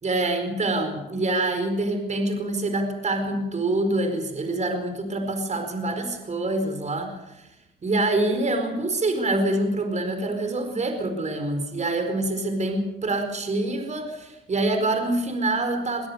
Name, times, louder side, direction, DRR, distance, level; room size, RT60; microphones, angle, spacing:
voice 1, 0.0-7.5 7.8-16.1, right 2 dB, 35° right, 6 dB, 4.7 m, -26 dB
23.0 x 17.0 x 7.0 m, 0.95 s
cardioid pair, 90°, 20 cm